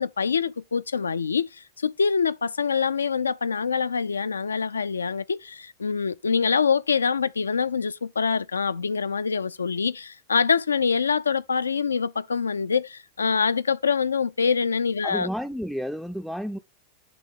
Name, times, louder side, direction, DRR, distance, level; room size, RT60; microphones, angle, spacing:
voice 1, 0.0-15.3, left 5 dB, 75° left, 0.4 m, -25 dB
voice 2, 15.0-16.6, equal, ahead, 0.4 m, -31 dB
8.5 x 3.4 x 4.9 m
figure-of-eight pair, 90°, 0 cm